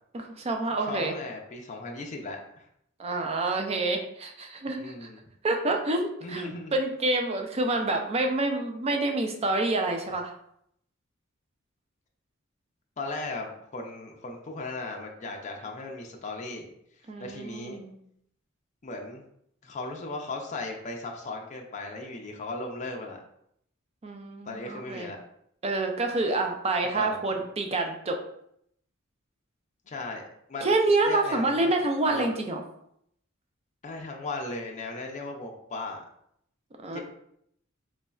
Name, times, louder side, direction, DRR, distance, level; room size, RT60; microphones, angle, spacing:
voice 1, 0.1-1.1 3.0-4.9 5.4-10.3 17.1-17.9 24.0-25.1 25.6-28.2 30.6-32.6 36.8-37.0, right 2 dB, 30° right, 4 dB, 0.4 m, -27 dB
voice 2, 0.8-2.7 4.8-5.2 6.2-6.7 7.7-7.8 13.0-16.7 17.2-17.8 18.8-19.2 19.6-23.2 24.5-25.2 26.9-27.3 29.9-30.2 30.5-30.7 31.0-31.7 32.1-32.3 33.8-36.0 36.9-37.0, left 2 dB, 35° left, 1 dB, 0.4 m, -37 dB
4.0 x 3.1 x 2.3 m, 0.73 s
head